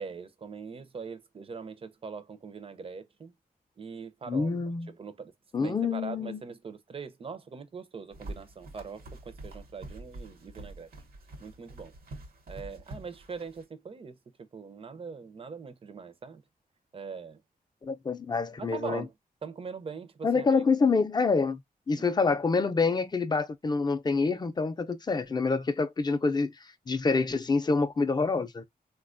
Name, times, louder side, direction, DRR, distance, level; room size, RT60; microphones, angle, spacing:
voice 1, 0.0-3.3 3.8-4.5 4.9-5.3 5.6-10.9 11.4-11.9 12.5-16.4 16.9-17.4 18.6-19.1 19.4-20.5 21.9-22.1, right 5 dB, 35° right, 0.5 m, -42 dB
voice 2, 4.3-4.9 5.5-6.4 17.8-19.0 20.2-21.6 21.9-26.5 26.9-28.6, left 4 dB, 30° left, 0.4 m, -26 dB
sound 1, 8.1-13.6, right 2 dB, 80° right, 0.9 m, -45 dB
3.9 x 2.2 x 2.4 m
wide cardioid pair, 140°, 15 cm